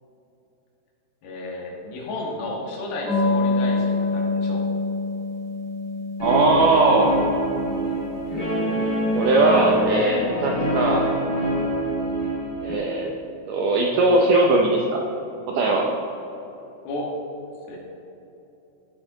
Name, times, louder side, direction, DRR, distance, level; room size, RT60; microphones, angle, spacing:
voice 1, 1.2-4.6 16.9-17.1 17.7-17.8, left 2 dB, 90° left, -1 dB, 3.7 m, -32 dB
sound 1, 3.1-9.3, left 3 dB, 65° left, 1.0 m, -27 dB
Guitar, 6.2-12.7, equal, 40° left, 1.4 m, -25 dB
voice 2, 6.2-7.1 9.1-11.1 12.6-13.1 13.5-15.0 15.5-15.9, right 2 dB, 80° right, 0 dB, 1.9 m, -19 dB
15.0 x 6.5 x 3.8 m, 2.9 s
omnidirectional pair, 4.6 m